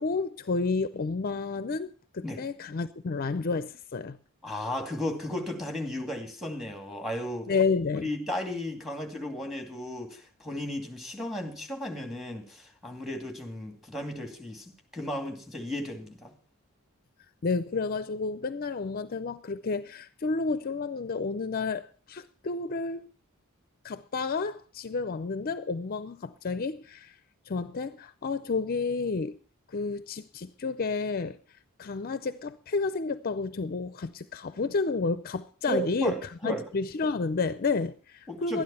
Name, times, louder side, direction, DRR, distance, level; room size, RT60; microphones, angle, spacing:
voice 1, 0.0-4.2 7.5-8.1 17.4-23.1 23.8-27.2 27.5-29.4 29.7-31.4 31.8-36.2 36.4-38.6, left 4 dB, 45° left, 0.5 m, -30 dB
voice 2, 4.4-7.5 8.0-16.3 35.7-36.6 38.3-38.6, equal, ahead, 2.6 m, -35 dB
12.5 x 10.5 x 5.6 m
head